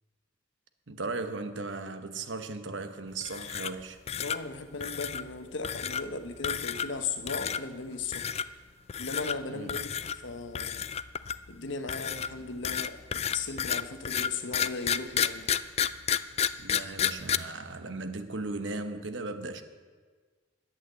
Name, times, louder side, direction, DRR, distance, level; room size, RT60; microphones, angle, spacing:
voice 1, 0.9-4.0 9.5-9.8 16.6-19.6, right 3 dB, 85° right, 1.0 m, -37 dB
sound 1, 3.2-3.8 4.1-4.4 4.8-5.2 5.6-6.0 6.4-7.0 7.3-7.6 8.1-8.4 8.9-9.4 9.7-10.2 10.5-11.5 11.9-17.4, left 8 dB, 35° left, 0.3 m, -30 dB
voice 2, 4.2-8.3 9.0-9.9 10.2-10.8 11.5-15.5, left 4 dB, 90° left, 1.0 m, -37 dB
11.0 x 8.6 x 7.9 m
head